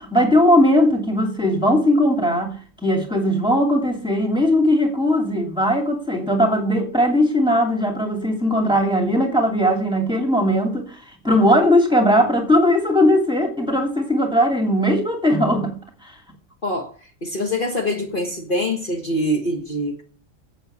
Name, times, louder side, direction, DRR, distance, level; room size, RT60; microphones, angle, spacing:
voice 1, 0.0-2.6 2.8-11.0 11.2-15.8 16.0-16.1, equal, 5° right, 2.4 m, -18 dB
voice 2, 17.2-20.0, left 1 dB, 40° left, 1.6 m, -24 dB
8.2 x 7.8 x 7.1 m
omnidirectional pair, 1.3 m